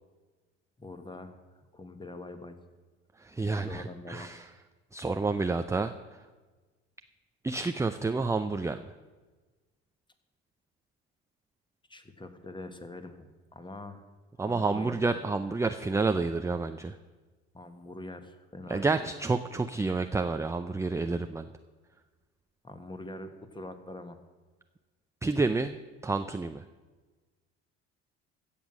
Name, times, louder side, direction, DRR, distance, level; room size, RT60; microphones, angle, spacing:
voice 1, 0.8-2.6 3.5-4.3 11.9-14.1 14.4-15.3 17.5-19.1 22.6-24.2, left 2 dB, 10° left, 8 dB, 1.4 m, -44 dB
voice 2, 3.2-4.5 4.9-6.2 7.4-8.8 14.4-17.0 18.7-21.5 25.2-25.7 26.0-26.6, right 3 dB, 10° right, 9 dB, 0.4 m, -29 dB
16.0 x 7.1 x 6.2 m, 1.3 s
hypercardioid pair, 60°, 37 cm